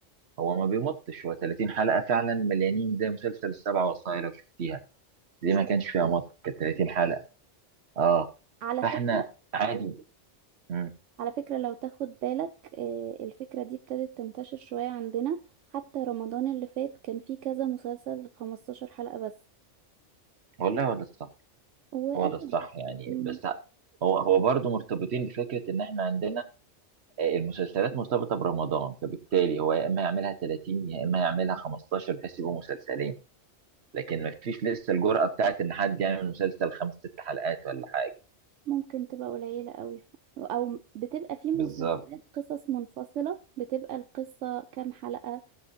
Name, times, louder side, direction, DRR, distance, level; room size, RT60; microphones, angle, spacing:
voice 1, 0.4-4.3 4.6-4.8 5.4-7.2 8.0-8.3 8.8-9.2 9.5-10.0 10.7-10.9 20.6-21.3 22.1-23.6 24.0-26.4 27.2-33.1 33.9-36.9 37.2-38.1 41.5-42.0, right 6 dB, 65° right, 10 dB, 1.4 m, -28 dB
voice 2, 11.2-15.4 15.7-19.3 21.9-22.6 23.1-23.4 38.7-40.0 40.4-45.4, right 11 dB, 80° right, 8 dB, 1.0 m, -34 dB
17.5 x 7.4 x 2.7 m, 0.31 s
omnidirectional pair, 1.2 m